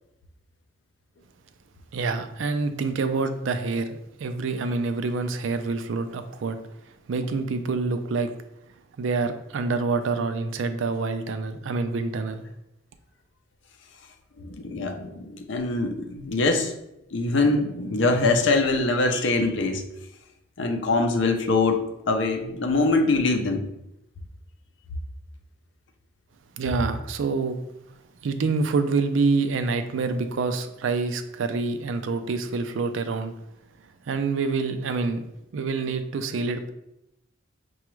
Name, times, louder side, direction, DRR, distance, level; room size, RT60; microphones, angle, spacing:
voice 1, 1.9-6.6 7.1-8.3 9.0-12.4 26.6-27.6 28.2-33.3 34.1-35.2 35.5-36.7, right 4 dB, 65° right, 8 dB, 0.4 m, -26 dB
voice 2, 14.4-16.7 17.1-19.8 20.6-23.6, left 3 dB, 60° left, 5 dB, 0.5 m, -23 dB
5.8 x 2.3 x 3.0 m, 0.86 s
head